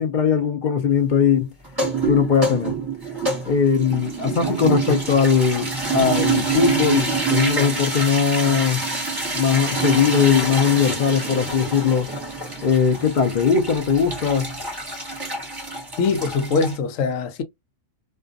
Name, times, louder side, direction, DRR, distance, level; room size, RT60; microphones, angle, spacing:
voice 1, 0.0-1.5 2.1-2.7 3.5-8.9 9.4-12.1 12.6-14.5, left 7 dB, 55° left, 0.5 m, -20 dB
sound 1, 1.6-16.8, right 4 dB, 20° right, 1.0 m, -26 dB
voice 2, 16.0-17.4, left 4 dB, 75° left, 0.9 m, -22 dB
2.4 x 2.2 x 2.3 m
omnidirectional pair, 1.4 m